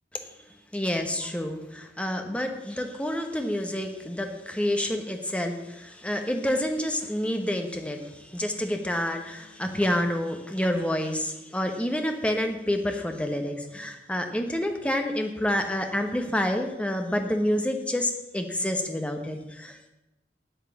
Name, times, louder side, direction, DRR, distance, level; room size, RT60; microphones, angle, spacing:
voice 1, 0.7-19.9, left 1 dB, 5° left, 4 dB, 1.1 m, -28 dB
8.5 x 8.4 x 7.0 m, 0.95 s
head